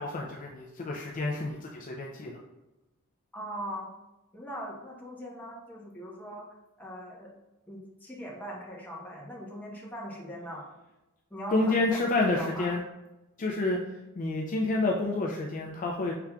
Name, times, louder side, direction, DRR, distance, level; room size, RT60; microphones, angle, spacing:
voice 1, 0.0-2.4 11.5-12.8 13.4-13.8 14.2-16.1, left 2 dB, 35° left, -1 dB, 0.4 m, -29 dB
voice 2, 3.3-3.9 4.3-6.5 6.8-7.3 7.7-10.6 11.3-12.7, equal, 10° left, -4 dB, 0.9 m, -40 dB
5.6 x 3.6 x 2.3 m, 1.0 s
head